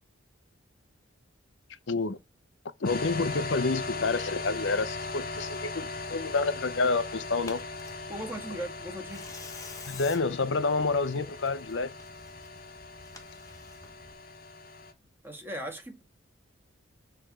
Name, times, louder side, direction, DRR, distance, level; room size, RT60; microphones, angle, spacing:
voice 1, 1.9-2.2 2.8-7.6 9.9-11.9, left 3 dB, 65° left, 0.7 m, -28 dB
sound 1, 2.8-14.9, left 3 dB, 45° left, 1.0 m, -39 dB
Tearing, 4.7-14.1, left 3 dB, 15° left, 1.0 m, -51 dB
voice 2, 8.1-9.3 15.2-16.0, right 1 dB, 10° right, 1.6 m, -38 dB
6.7 x 3.3 x 6.0 m
head